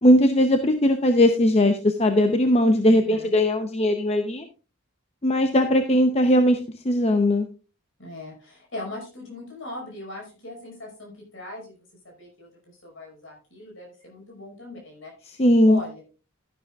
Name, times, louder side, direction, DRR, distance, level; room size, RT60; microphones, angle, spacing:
voice 1, 0.0-4.4 5.2-6.6 6.8-7.5 15.4-15.8, left 1 dB, 30° left, 7 dB, 0.7 m, -19 dB
voice 2, 2.8-3.3 8.0-11.8 12.0-12.5 12.8-16.0, left 2 dB, 60° left, 0 dB, 5.5 m, -39 dB
12.0 x 11.5 x 2.4 m, 0.34 s
head